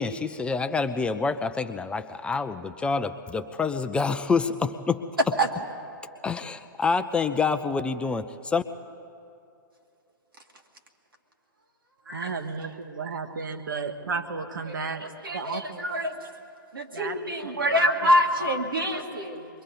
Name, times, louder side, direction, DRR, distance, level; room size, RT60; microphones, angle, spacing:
voice 1, 0.0-5.1 6.2-8.6, left 4 dB, 10° left, 9 dB, 0.4 m, -27 dB
voice 2, 12.1-15.1 15.3-15.8 16.9-17.2 17.5-17.9 18.9-19.0, right 5 dB, 60° right, 9 dB, 1.4 m, -33 dB
voice 3, 14.7-16.2 16.7-19.5, equal, 80° right, 2 dB, 2.3 m, -26 dB
28.5 x 22.5 x 4.1 m, 2.5 s
figure-of-eight pair, 115°, 12 cm